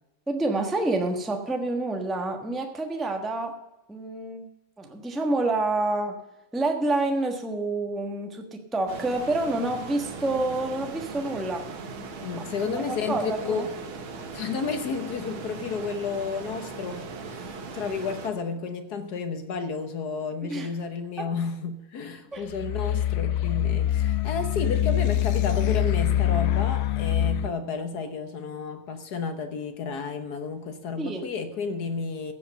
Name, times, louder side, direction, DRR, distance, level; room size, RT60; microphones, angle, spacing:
voice 1, 0.3-3.6 3.9-4.5 4.8-6.2 6.5-11.7 12.4-13.7 20.5-20.7 21.2-21.3 22.3-22.4 31.0-31.2, right 2 dB, ahead, 4 dB, 0.8 m, -28 dB
sound 1, 8.9-18.3, right 4 dB, 90° right, 2.1 m, -39 dB
voice 2, 12.2-13.7 14.3-32.3, left 5 dB, 60° left, 8 dB, 1.4 m, -32 dB
sound 2, 22.5-27.5, left 11 dB, 75° left, 0.9 m, -24 dB
15.5 x 5.4 x 6.6 m, 0.95 s
omnidirectional pair, 2.2 m